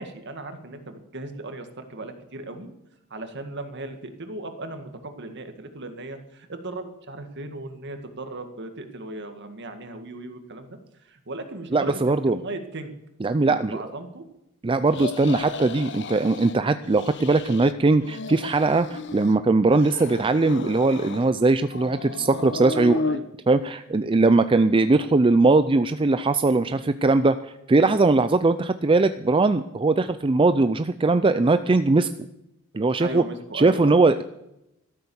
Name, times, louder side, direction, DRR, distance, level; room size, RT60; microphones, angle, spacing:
voice 1, 0.0-2.7 3.1-10.8 11.0-12.9 13.4-14.2 22.7-23.2 28.1-28.2 33.0-34.1, right 2 dB, 55° right, 7 dB, 2.0 m, -37 dB
voice 2, 11.7-12.4 13.2-13.8 14.6-23.0 23.5-32.1 32.7-33.2 33.5-34.2, right 3 dB, 25° right, 11 dB, 0.4 m, -20 dB
sound 1, 14.9-16.6 16.9-17.7 18.0-19.4 19.7-21.3 21.7-23.2, left 3 dB, 60° left, 0.8 m, -34 dB
13.5 x 12.5 x 7.1 m, 0.86 s
head